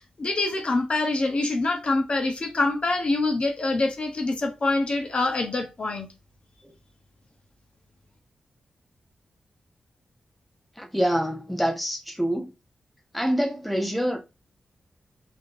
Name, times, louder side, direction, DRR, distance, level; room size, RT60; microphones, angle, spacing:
voice 1, 0.2-6.1, left 2 dB, 45° left, 0.8 m, -25 dB
voice 2, 10.8-12.5 13.1-14.2, equal, ahead, 0.6 m, -26 dB
3.5 x 2.6 x 2.6 m
cardioid pair, 80°, 3 cm